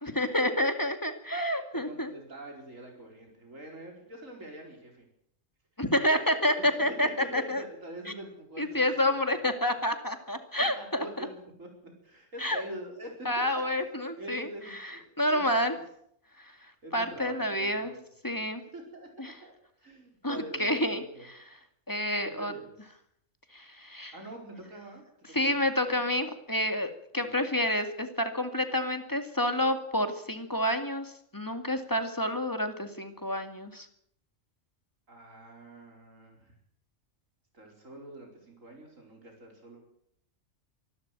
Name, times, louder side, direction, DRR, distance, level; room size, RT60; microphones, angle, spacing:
voice 1, 0.0-2.1 5.8-7.6 8.6-11.3 12.4-12.6 13.3-15.8 16.4-16.5 16.9-17.9 18.2-18.6 19.2-19.4 20.2-21.4 21.9-22.5 23.5-24.1 25.3-33.9, left 1 dB, 15° left, 7 dB, 2.3 m, -29 dB
voice 2, 1.7-5.1 6.6-9.8 10.8-11.7 12.0-13.3 13.5-15.8 16.8-18.0 18.7-19.5 19.8-21.3 22.2-22.9 24.1-25.6 25.9-26.1 27.2-27.5 35.1-36.5 37.5-39.8, right 1 dB, 85° right, 1 dB, 5.1 m, -45 dB
25.0 x 12.5 x 9.2 m, 0.70 s
omnidirectional pair, 1.3 m